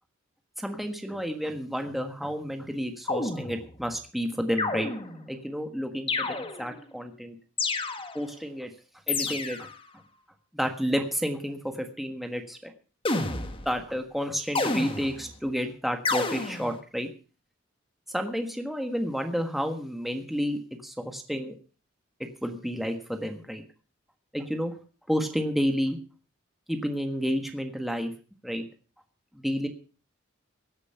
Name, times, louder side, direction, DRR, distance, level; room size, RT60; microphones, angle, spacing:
voice 1, 0.6-4.9 5.3-7.3 8.1-8.7 9.1-9.7 10.5-12.7 13.6-17.1 18.1-21.5 22.4-23.6 24.3-24.7 25.1-26.0 26.7-28.1 28.4-28.6 29.3-29.7, equal, ahead, 5 dB, 1.5 m, -30 dB
sound 1, 3.1-3.9 4.6-5.3 6.1-6.8 7.6-8.4 9.1-9.8 13.0-13.8 14.5-15.3 16.0-16.8, left 3 dB, 25° left, 1.5 m, -30 dB
17.0 x 9.7 x 5.7 m, 0.37 s
head